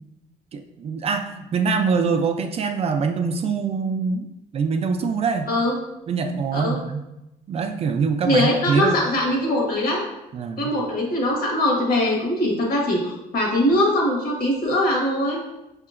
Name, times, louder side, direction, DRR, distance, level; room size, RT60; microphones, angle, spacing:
voice 1, 0.5-4.3 4.5-5.5 6.1-7.0 7.5-9.0 10.3-10.7, right 5 dB, 40° right, 5 dB, 0.3 m, -24 dB
voice 2, 8.2-10.0 10.6-15.4, left 1 dB, 60° left, -2 dB, 1.3 m, -21 dB
5.4 x 2.9 x 2.5 m, 0.91 s
cardioid pair, 110°, 17 cm